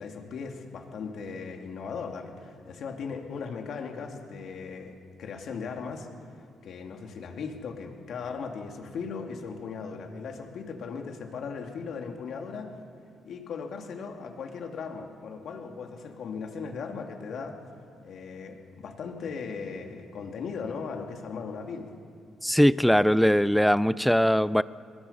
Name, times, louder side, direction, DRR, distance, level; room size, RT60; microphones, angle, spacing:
voice 1, 0.0-6.1 6.6-12.7 13.2-17.5 18.0-21.9, left 5 dB, 65° left, 3 dB, 2.6 m, -38 dB
voice 2, 22.4-24.6, equal, ahead, 18 dB, 0.5 m, -21 dB
22.0 x 20.5 x 5.7 m, 2.5 s
cardioid pair, 90°, 0 cm